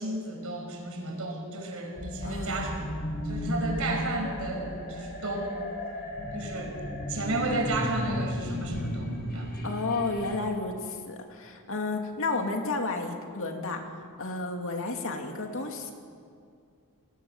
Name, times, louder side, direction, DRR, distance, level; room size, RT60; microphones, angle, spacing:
voice 1, 0.0-2.9 3.2-5.6 6.3-6.7 7.1-9.5, right 2 dB, 70° right, 2 dB, 5.6 m, -33 dB
sound 1, 2.0-10.4, left 1 dB, 45° left, 5.2 m, -34 dB
voice 2, 2.2-2.7 9.6-13.8 14.2-15.9, left 3 dB, 65° left, 3 dB, 2.6 m, -32 dB
28.0 x 19.0 x 7.3 m, 2.3 s
head